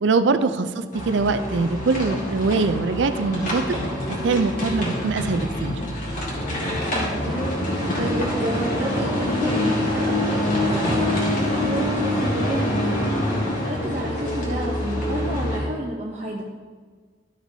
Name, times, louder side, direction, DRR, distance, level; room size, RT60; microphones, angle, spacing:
voice 1, 0.0-3.8 4.2-5.8, right 4 dB, 90° right, 10 dB, 0.5 m, -22 dB
sound 1, 0.9-15.6, left 1 dB, 45° left, 1.9 m, -25 dB
voice 2, 6.9-13.1 13.4-16.4, right 1 dB, 40° right, -3 dB, 0.7 m, -31 dB
13.0 x 6.0 x 2.7 m, 1.6 s
head